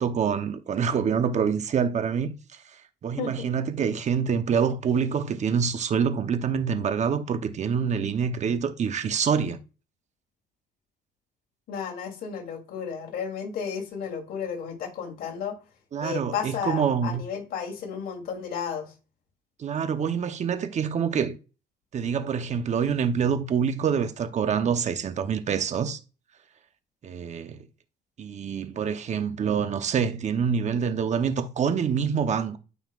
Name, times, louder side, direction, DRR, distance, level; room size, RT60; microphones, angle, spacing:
voice 1, 0.0-2.4 3.0-9.6 15.9-17.2 19.6-21.4 21.9-26.0 27.0-27.6 28.2-32.6, right 7 dB, 45° right, 0.9 m, -26 dB
voice 2, 3.2-3.5 11.7-15.6 16.0-18.9, left 7 dB, 65° left, 3.1 m, -33 dB
13.5 x 5.7 x 2.5 m
cardioid pair, 110°, 17 cm